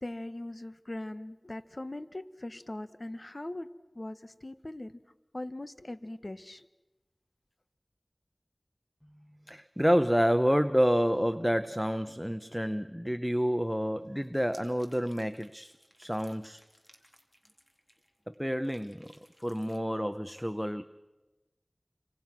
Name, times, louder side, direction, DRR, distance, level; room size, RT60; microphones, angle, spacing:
voice 1, 0.0-3.7 3.9-5.0 5.3-6.7, left 1 dB, 45° left, 1.1 m, -40 dB
voice 2, 9.5-16.6 18.3-19.1 19.4-20.8, equal, ahead, 0.7 m, -29 dB
sound 1, 14.2-18.3 18.6-19.8, equal, 20° left, 3.4 m, -60 dB
29.5 x 25.5 x 6.0 m
wide cardioid pair, 40°, 0 cm